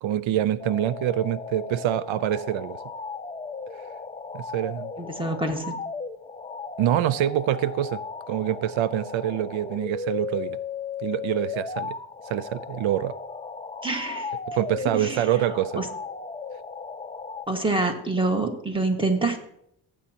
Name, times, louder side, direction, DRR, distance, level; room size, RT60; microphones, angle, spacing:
voice 1, 0.0-2.8 4.3-4.9 6.8-8.0 8.3-10.6 11.0-12.0 12.3-13.1 14.5-15.9, right 12 dB, 80° right, 0.6 m, -25 dB
sound 1, 0.6-17.5, left 5 dB, 15° left, 0.4 m, -36 dB
voice 2, 5.0-5.7 13.8-14.4 14.9-15.3 15.7-15.9 17.5-19.4, right 2 dB, 10° right, 1.6 m, -26 dB
18.5 x 8.5 x 2.9 m
cardioid pair, 105°, 46 cm